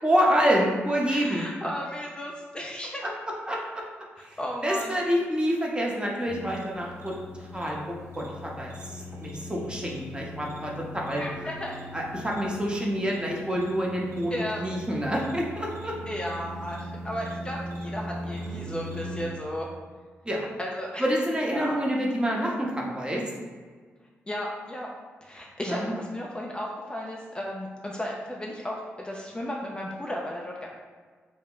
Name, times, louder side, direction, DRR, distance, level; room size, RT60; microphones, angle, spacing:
voice 1, 0.0-1.4 3.0-3.1 3.5-3.6 4.2-4.4 4.6-11.2 11.9-15.9 20.2-20.5 21.0-23.2 25.7-25.9, equal, 20° right, -2 dB, 0.7 m, -27 dB
voice 2, 1.1-3.1 4.4-5.0 11.2-11.8 14.3-14.6 16.1-19.7 20.6-21.0 21.5-21.8 24.3-24.9 25.2-30.7, equal, 20° left, -2 dB, 0.4 m, -34 dB
sound 1, 6.3-19.3, equal, 60° right, 0.5 m, -40 dB
2.0 x 2.0 x 3.7 m, 1.5 s
supercardioid pair, 45°, 5 cm